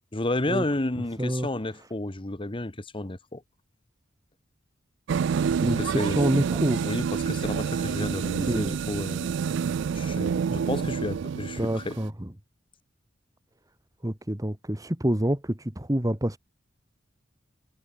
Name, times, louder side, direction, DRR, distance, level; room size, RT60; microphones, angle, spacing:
voice 1, 0.1-3.4 5.8-6.2 6.8-9.3 9.9-11.9, left 2 dB, 30° left, 1.2 m, -31 dB
sound 1, 5.1-12.1, right 6 dB, 65° right, 0.3 m, -28 dB
voice 2, 5.6-6.9 8.4-8.7 10.5-10.6 11.6-12.3 14.0-16.4, right 1 dB, 20° right, 1.7 m, -27 dB
head